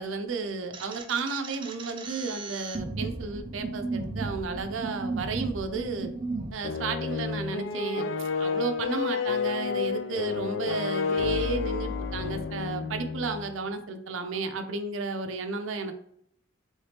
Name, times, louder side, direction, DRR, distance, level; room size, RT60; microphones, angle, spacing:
voice 1, 0.0-6.1 6.5-15.9, right 4 dB, 90° right, 7 dB, 0.5 m, -33 dB
sound 1, 0.7-6.5, right 3 dB, 25° right, 0.3 m, -35 dB
sound 2, 6.6-13.6, left 5 dB, 65° left, 0.3 m, -30 dB
3.4 x 3.2 x 2.8 m, 0.68 s
head